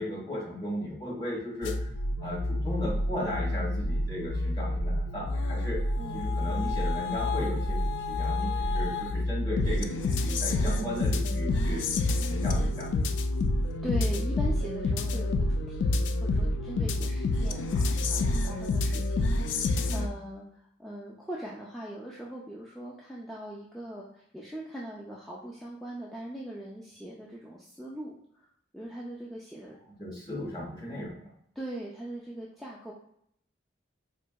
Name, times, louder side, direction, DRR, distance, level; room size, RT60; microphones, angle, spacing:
voice 1, 0.0-1.8 2.2-5.8 6.1-11.8 12.2-13.1 30.0-31.3, left 1 dB, 25° left, -4 dB, 1.0 m, -36 dB
sound 1, 1.6-20.1, left 2 dB, 90° left, 0.3 m, -28 dB
voice 2, 6.0-6.3 13.8-20.4 20.8-28.5 28.7-29.8 31.6-32.9, right 1 dB, ahead, -6 dB, 0.3 m, -41 dB
4.3 x 2.7 x 2.2 m, 0.68 s
head